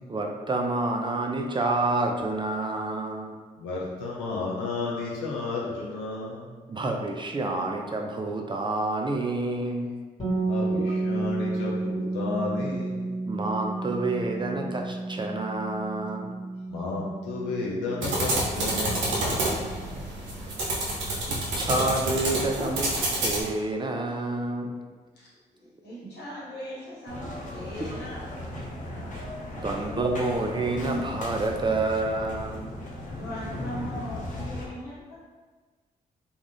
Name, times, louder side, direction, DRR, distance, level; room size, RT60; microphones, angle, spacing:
voice 1, 0.1-3.3 6.7-10.0 10.8-11.0 13.2-16.4 17.0-17.1 19.9-20.2 20.6-20.7 21.0-22.9 23.2-24.8 26.0-26.1 27.8-28.0 29.6-32.6, right 2 dB, 25° right, 2 dB, 0.4 m, -29 dB
voice 2, 3.6-6.6 10.5-13.2 16.7-19.3, left 3 dB, 90° left, -4 dB, 0.4 m, -32 dB
sound 1, 10.2-19.9, right 3 dB, 25° left, 1.2 m, -32 dB
sound 2, 18.0-23.4, right 1 dB, 80° right, 0.6 m, -28 dB
voice 3, 25.1-28.3 33.1-35.2, equal, 65° left, -7 dB, 1.2 m, -39 dB
sound 3, 27.1-34.6, left 1 dB, 45° left, 0.8 m, -37 dB
2.4 x 2.3 x 3.4 m, 1.4 s
hypercardioid pair, 40°, 19 cm